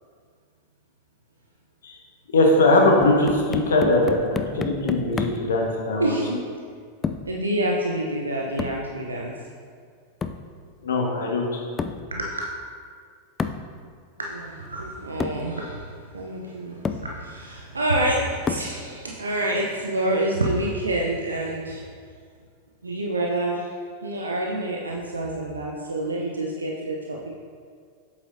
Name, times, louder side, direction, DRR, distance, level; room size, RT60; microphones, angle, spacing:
voice 1, 2.3-6.2 10.8-11.6, left 2 dB, 65° left, 0 dB, 1.3 m, -20 dB
sound 1, 3.0-5.5 7.0-7.4 8.6-8.9 10.2-10.5 11.8-12.1 13.4-13.7 14.7-14.8 15.2-15.5 16.3-16.4 16.8-17.1 18.5-18.8, left 5 dB, 20° left, 0.4 m, -30 dB
voice 2, 6.0-6.4 7.2-9.3 11.1-11.4 12.1-12.5 14.2-21.8 22.8-23.7 24.0-27.4, right 1 dB, 75° right, -1 dB, 0.7 m, -27 dB
8.2 x 7.9 x 2.7 m, 2.1 s
figure-of-eight pair, 90°, 0 cm